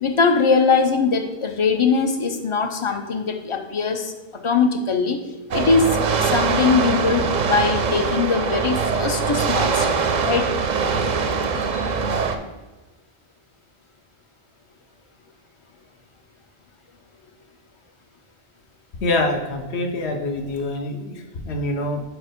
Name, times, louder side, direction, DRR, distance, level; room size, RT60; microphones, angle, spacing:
voice 1, 0.0-4.1 4.4-5.2 5.5-10.0 10.3-10.5 11.6-11.8, left 4 dB, 40° left, 5 dB, 0.4 m, -21 dB
sound 1, 5.5-12.4, right 5 dB, 55° right, 0.5 m, -22 dB
voice 2, 19.0-22.0, left 2 dB, 75° left, 4 dB, 1.1 m, -25 dB
4.8 x 4.4 x 5.1 m, 1.2 s
omnidirectional pair, 1.1 m